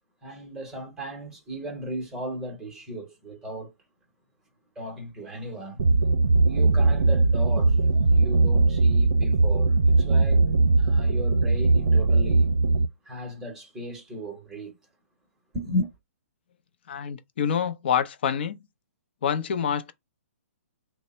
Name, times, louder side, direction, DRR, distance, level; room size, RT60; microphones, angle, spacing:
voice 1, 0.2-3.7 4.8-5.9 6.4-10.4 10.8-12.5 13.0-14.8 15.5-15.9, equal, 5° right, 0.8 m, -35 dB
sound 1, 5.8-12.9, right 3 dB, 65° right, 0.5 m, -20 dB
voice 2, 16.9-18.6 19.2-19.9, left 8 dB, 45° left, 0.6 m, -26 dB
3.3 x 2.0 x 4.1 m
hypercardioid pair, 170°, 8 cm